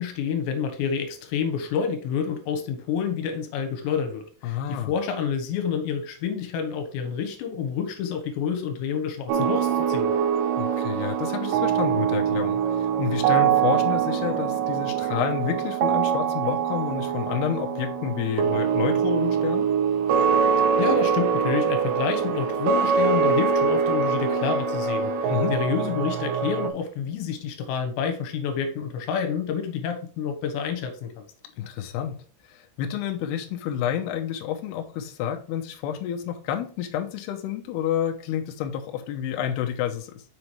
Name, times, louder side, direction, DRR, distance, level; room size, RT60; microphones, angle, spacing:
voice 1, 0.0-10.1 20.8-31.2, left 7 dB, 75° left, 6 dB, 3.0 m, -28 dB
voice 2, 4.4-4.9 10.6-19.7 25.3-25.5 31.6-32.2 32.5-40.2, left 9 dB, 90° left, 3 dB, 2.3 m, -29 dB
sound 1, 9.3-26.7, right 7 dB, 80° right, 2.8 m, -24 dB
6.9 x 5.7 x 3.2 m, 0.42 s
omnidirectional pair, 5.9 m